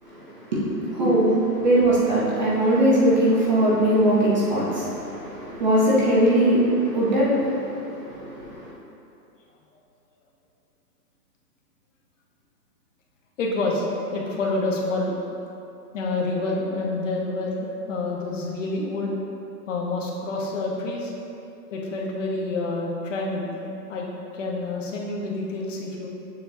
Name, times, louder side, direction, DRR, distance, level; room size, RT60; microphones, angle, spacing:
voice 1, 0.0-8.7, right 1 dB, 30° right, -6 dB, 0.7 m, -21 dB
voice 2, 13.4-13.9 14.1-15.2 15.9-19.1 19.7-21.1 21.7-23.5 23.9-24.1 24.3-26.1, left 2 dB, 50° left, -2 dB, 1.2 m, -28 dB
7.0 x 6.3 x 2.7 m, 2.8 s
hypercardioid pair, 170°, 49 cm